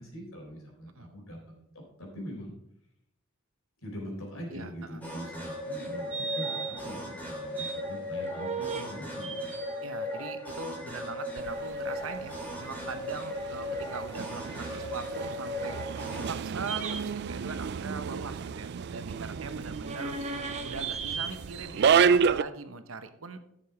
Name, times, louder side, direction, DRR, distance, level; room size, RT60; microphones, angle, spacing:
voice 1, 0.0-2.5 3.8-9.6, equal, 75° left, 0 dB, 4.2 m, -42 dB
voice 2, 4.5-5.0 9.8-15.8 16.3-20.2 20.6-23.4, right 4 dB, 70° right, 10 dB, 0.9 m, -41 dB
sound 1, 5.0-16.3, left 1 dB, 5° left, 2.7 m, -37 dB
sound 2, 6.1-6.8 7.2-7.8 8.2-8.8 9.2-9.8 16.6-17.0 19.7-21.3, right 5 dB, 30° right, 1.0 m, -35 dB
sound 3, 11.4-22.4, right 6 dB, 50° right, 0.3 m, -31 dB
11.5 x 6.9 x 4.7 m, 0.79 s
head